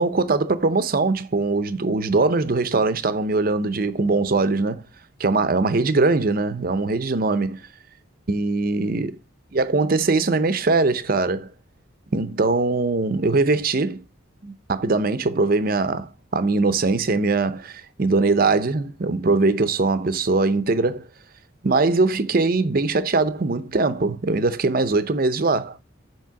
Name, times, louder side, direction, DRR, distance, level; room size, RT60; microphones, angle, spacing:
voice 1, 0.0-4.8 5.2-7.6 8.3-9.2 9.5-11.5 12.1-14.0 14.4-21.0 21.6-25.8, right 3 dB, 45° right, 0.6 m, -21 dB
7.5 x 3.0 x 5.7 m
head